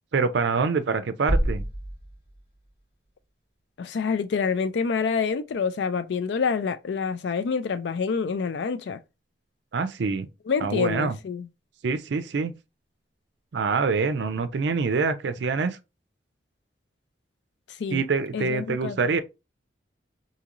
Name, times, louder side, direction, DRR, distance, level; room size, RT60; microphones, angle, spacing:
voice 1, 0.1-1.6 9.7-10.3 10.6-11.2 11.8-12.5 13.5-15.8 17.9-19.2, right 4 dB, 75° right, 0.4 m, -25 dB
sound 1, 1.3-3.1, right 1 dB, 50° left, 1.4 m, -28 dB
voice 2, 3.8-9.0 10.5-11.5 17.7-18.0 18.3-19.2, left 5 dB, 70° left, 0.4 m, -27 dB
2.9 x 2.7 x 2.5 m
head